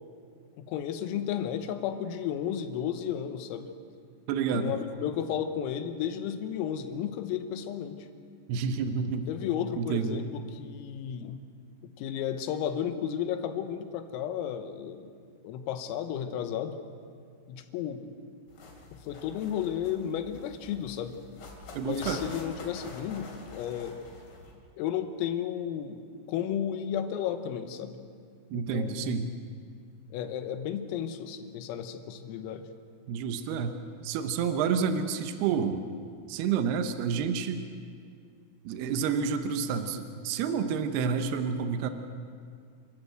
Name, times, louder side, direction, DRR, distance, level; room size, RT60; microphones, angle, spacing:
voice 1, 0.6-3.7 4.5-8.1 9.3-11.4 12.0-15.0 15.4-16.8 17.5-18.1 18.9-21.2 21.8-24.0 24.8-28.0 28.5-29.2 30.1-32.7, left 9 dB, 85° left, 9 dB, 3.8 m, -33 dB
voice 2, 4.3-4.8 8.5-9.3 9.8-10.2 21.7-22.2 28.5-29.3 33.1-33.8 34.0-35.8 36.3-37.6 38.7-41.9, right 6 dB, 85° right, 8 dB, 2.3 m, -29 dB
sound 1, 18.5-24.5, left 3 dB, 50° left, 4.7 m, -46 dB
29.0 x 13.5 x 7.9 m, 2.2 s
omnidirectional pair, 6.0 m